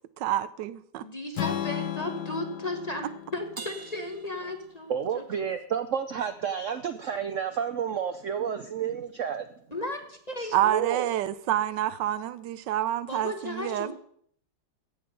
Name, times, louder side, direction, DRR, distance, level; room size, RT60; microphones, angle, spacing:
voice 1, 0.2-1.0 10.5-13.9, right 12 dB, 85° right, 1.3 m, -28 dB
voice 2, 1.0-5.2 9.7-10.6 13.1-13.9, left 1 dB, 25° left, 1.1 m, -35 dB
Strum, 1.3-5.5, left 10 dB, 70° left, 1.4 m, -36 dB
Crash cymbal, 3.6-5.3, right 4 dB, 40° right, 0.3 m, -45 dB
voice 3, 4.9-9.5 10.4-11.1, right 8 dB, 65° right, 0.8 m, -30 dB
15.5 x 5.8 x 6.6 m
omnidirectional pair, 1.9 m